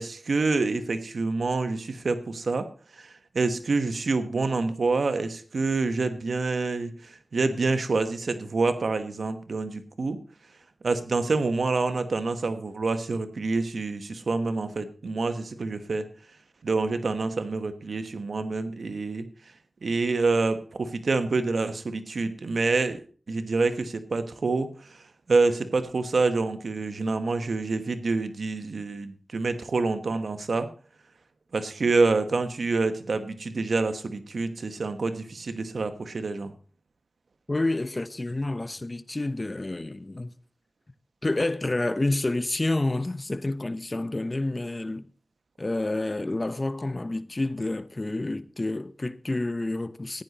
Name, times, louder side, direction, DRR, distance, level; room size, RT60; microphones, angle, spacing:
voice 1, 0.0-2.7 3.0-10.2 10.8-16.1 16.6-19.2 19.8-23.0 23.3-25.0 25.3-30.7 31.5-36.5, right 3 dB, 85° right, 1.2 m, -27 dB
voice 2, 37.5-40.3 41.2-45.1 45.6-50.2, left 2 dB, 40° left, 0.9 m, -29 dB
14.5 x 9.8 x 4.2 m
cardioid pair, 45°, 0 cm